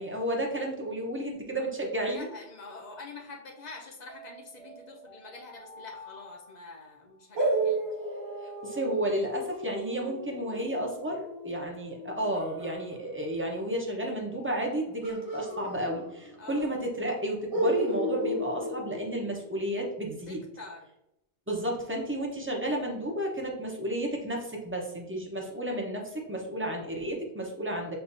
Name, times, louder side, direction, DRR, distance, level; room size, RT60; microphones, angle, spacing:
voice 1, 0.0-2.3 8.6-20.4 21.5-28.0, right 1 dB, 15° right, 0 dB, 0.8 m, -32 dB
sound 1, 1.9-3.0 4.1-7.3, left 1 dB, 35° right, 1.3 m, -51 dB
voice 2, 2.1-7.9 16.4-16.8 20.3-20.9, left 3 dB, 45° left, 0 dB, 0.9 m, -46 dB
sound 2, 7.3-12.8 15.0-16.5 16.7-16.8 17.5-19.7, right 1 dB, 80° right, 1.8 m, -33 dB
6.9 x 2.6 x 2.6 m, 0.85 s
omnidirectional pair, 1.0 m